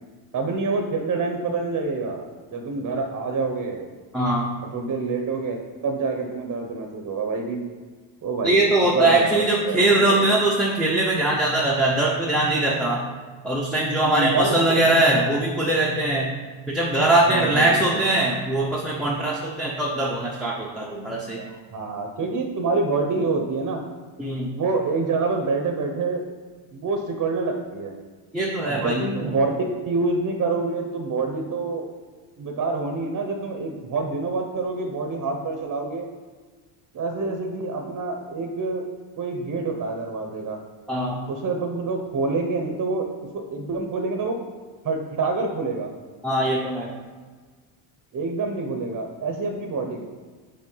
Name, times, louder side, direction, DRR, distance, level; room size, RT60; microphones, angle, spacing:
voice 1, 0.3-3.9 4.7-5.6 5.8-7.6 8.2-10.3 13.9-15.3 17.3-18.0 21.4-23.9 24.5-26.2 26.7-27.9 28.6-29.6 29.9-31.9 32.4-36.1 36.9-38.9 39.2-40.6 41.3-43.1 43.3-44.4 44.8-45.9 48.1-50.0, right 3 dB, 35° right, 3 dB, 0.8 m, -27 dB
voice 2, 4.1-4.5 8.4-13.1 13.4-16.3 16.7-21.4 24.2-24.6 28.3-29.3 40.9-41.3 46.2-47.0, right 2 dB, ahead, -6 dB, 0.6 m, -21 dB
5.4 x 4.4 x 5.4 m, 1.4 s
cardioid pair, 120°, 49 cm